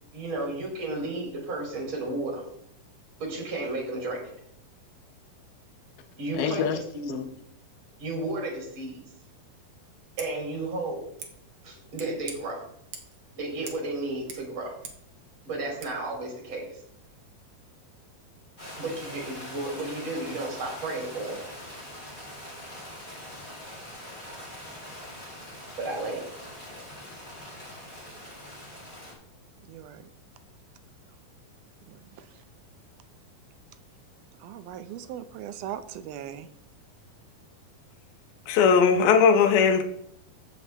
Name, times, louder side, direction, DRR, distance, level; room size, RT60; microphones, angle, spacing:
voice 1, 0.1-2.4 3.2-4.3 6.2-7.2 8.0-9.0 10.2-11.0 11.6-12.6 13.4-14.7 15.5-16.7 18.8-21.4 25.8-26.3, right 2 dB, 35° right, 3.9 m, -33 dB
voice 2, 6.3-6.8 7.1-7.3 38.5-39.8, left 6 dB, 80° left, 2.8 m, -20 dB
Scissors, 10.1-10.3 11.2-11.3 11.9-12.4 12.9-13.2 13.6-13.9 14.1-15.1 15.8-15.9, right 6 dB, 70° right, 1.1 m, -43 dB
sound 1, 18.6-29.1, left 1 dB, 15° left, 3.8 m, -43 dB
voice 3, 29.7-30.0 31.9-32.3 34.4-36.5, right 10 dB, 85° right, 2.5 m, -39 dB
14.5 x 6.9 x 3.5 m
omnidirectional pair, 4.3 m